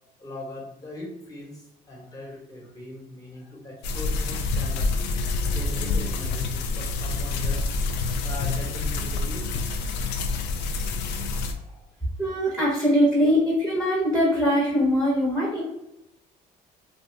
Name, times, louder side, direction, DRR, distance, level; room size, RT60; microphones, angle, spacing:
voice 1, 0.2-4.9 5.5-7.6 8.2-9.6 10.0-10.4 11.2-11.9, left 1 dB, 20° left, -3 dB, 1.2 m, -40 dB
sound 1, 3.8-11.5, left 3 dB, 90° left, 0.4 m, -27 dB
voice 2, 12.2-15.6, equal, ahead, -5 dB, 0.9 m, -22 dB
2.6 x 2.3 x 3.2 m, 0.86 s
cardioid pair, 110°, 17 cm